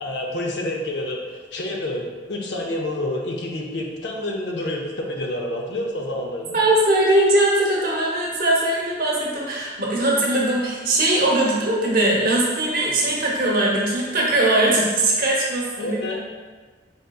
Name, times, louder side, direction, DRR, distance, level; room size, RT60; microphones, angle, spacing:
voice 1, 0.0-6.6 15.8-16.1, left 1 dB, 65° left, 0 dB, 0.6 m, -28 dB
voice 2, 6.5-16.1, right 1 dB, 50° right, -3 dB, 0.8 m, -20 dB
4.0 x 3.7 x 2.3 m, 1.4 s
head